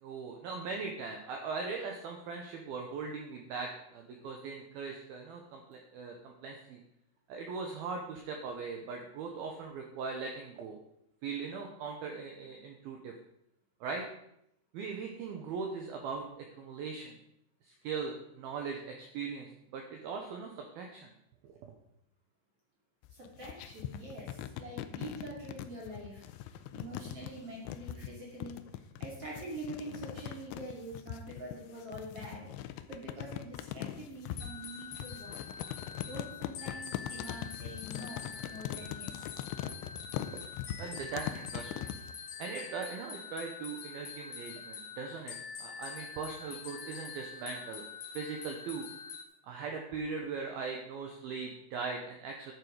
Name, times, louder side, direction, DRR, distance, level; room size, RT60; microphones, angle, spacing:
voice 1, 0.0-6.8 7.3-10.8 11.2-13.1 13.8-14.1 14.7-17.2 17.6-21.1 21.5-21.6 40.1-40.4 40.8-41.9 42.4-47.8 48.1-48.9 49.4-52.5, right 5 dB, 75° right, 2 dB, 2.3 m, -40 dB
sound 1, 23.0-42.2, left 12 dB, 85° left, 2.6 m, -41 dB
voice 2, 23.1-26.3 26.7-32.5 32.9-35.4 36.1-39.3, right 1 dB, 40° right, -3 dB, 2.7 m, -45 dB
sound 2, 34.4-49.3, left 6 dB, 60° left, 2.7 m, -45 dB
11.5 x 7.9 x 5.0 m, 0.76 s
omnidirectional pair, 5.7 m